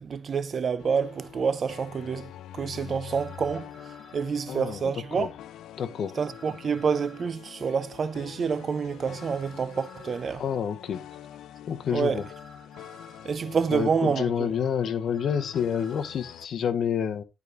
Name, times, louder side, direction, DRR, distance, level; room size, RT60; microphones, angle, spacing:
voice 1, 0.0-3.7 4.1-5.3 6.2-10.4 11.9-12.2 13.2-14.5, right 6 dB, 50° right, 0.6 m, -28 dB
sound 1, 0.8-16.5, left 11 dB, 90° left, 0.4 m, -45 dB
sound 2, 1.2-1.3 3.1-4.3 6.1-7.3 9.1-10.3 12.1-13.3 15.1-16.1, equal, ahead, 4.5 m, -51 dB
voice 2, 4.5-4.8 5.2-5.3 5.8-6.2 10.4-11.0 11.7-12.2 13.7-17.2, left 8 dB, 70° left, 0.8 m, -28 dB
11.0 x 4.8 x 2.5 m
cardioid pair, 95°, 0 cm